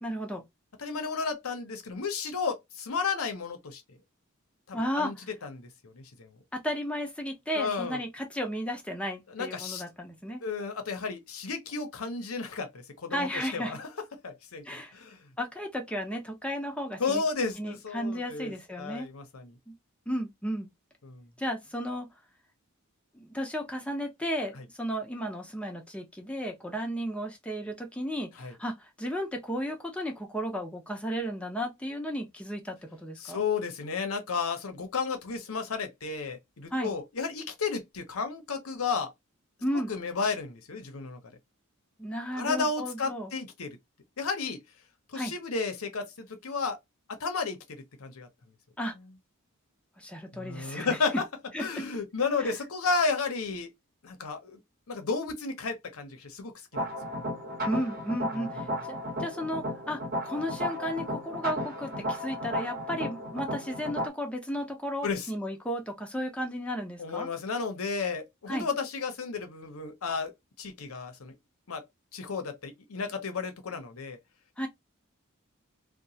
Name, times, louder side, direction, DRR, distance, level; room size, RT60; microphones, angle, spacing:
voice 1, 0.0-0.4 4.7-5.1 6.5-10.4 13.1-13.8 14.6-14.9 15.4-17.2 17.6-19.1 19.7-19.8 20.1-20.7 21.4-22.1 23.1-33.4 36.7-36.9 39.6-39.9 42.0-43.3 45.1-45.3 48.8-48.9 50.0-51.0 51.5-51.6 52.4-52.5 57.6-67.3 68.5-68.7 74.6-74.7, equal, 5° left, 0.7 m, -34 dB
voice 2, 0.8-4.0 4.7-5.1 5.4-6.4 7.5-8.0 9.3-9.8 10.4-13.9 14.2-15.3 17.0-19.5 21.0-21.3 24.5-24.7 28.4-28.6 33.2-39.1 39.7-41.4 42.3-43.8 44.2-44.6 45.1-46.8 47.1-48.3 50.3-51.2 51.6-53.7 54.0-54.6 54.9-57.4 58.3-58.5 65.0-65.3 67.0-70.3 70.6-71.3 71.7-71.8 72.1-74.2, left 4 dB, 70° left, 0.8 m, -33 dB
sound 1, 56.7-64.1, equal, 45° right, 0.9 m, -34 dB
2.9 x 2.2 x 2.7 m
head